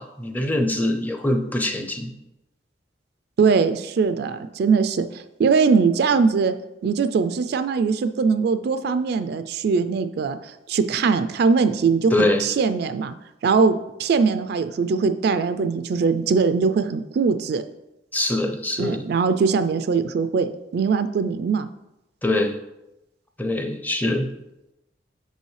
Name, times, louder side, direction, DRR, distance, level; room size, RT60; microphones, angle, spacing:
voice 1, 0.0-2.1 12.1-12.5 18.1-19.0 22.2-22.6 23.4-24.3, left 1 dB, 10° left, 5 dB, 0.5 m, -23 dB
voice 2, 3.4-6.5 6.8-13.1 13.4-17.6 18.8-21.7, right 5 dB, 60° right, 10 dB, 0.3 m, -21 dB
6.1 x 5.4 x 3.2 m, 0.91 s
head